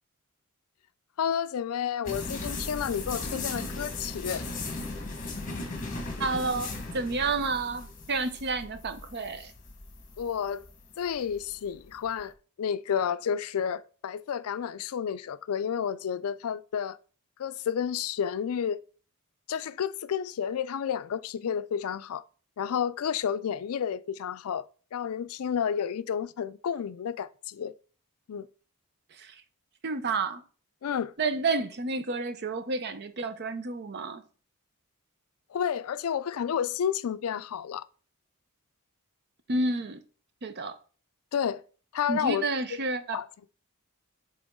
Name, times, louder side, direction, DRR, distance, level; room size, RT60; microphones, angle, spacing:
voice 1, 1.2-4.4 10.2-10.6 11.0-12.3 12.6-17.0 17.4-18.8 19.5-22.2 22.6-24.6 24.9-27.7 28.3-28.5 30.8-31.1 35.5-37.8 41.3-41.6 41.9-42.4 43.1-43.2, left 8 dB, 70° left, 0.4 m, -31 dB
sound 1, 2.1-12.2, left 3 dB, 35° left, 1.2 m, -37 dB
voice 2, 6.2-9.5 29.1-29.4 29.8-30.4 31.2-34.2 39.5-40.0 40.4-40.8 42.1-43.2, right 3 dB, 50° right, 0.7 m, -30 dB
7.9 x 3.4 x 3.6 m
head